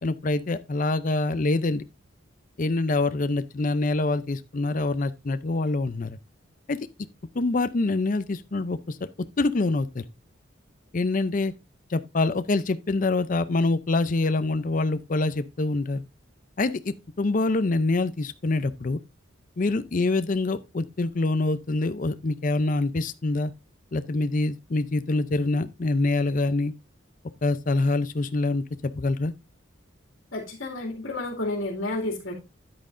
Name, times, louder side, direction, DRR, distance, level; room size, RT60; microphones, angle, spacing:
voice 1, 0.0-1.8 2.6-6.2 6.7-6.8 7.4-9.0 9.4-10.0 10.9-11.5 11.9-16.0 16.6-19.0 19.6-23.5 23.9-26.7 27.4-28.6 29.0-29.3, left 2 dB, 40° left, 0.5 m, -25 dB
voice 2, 30.3-32.3, left 2 dB, 70° left, 2.4 m, -31 dB
9.7 x 8.6 x 2.6 m
head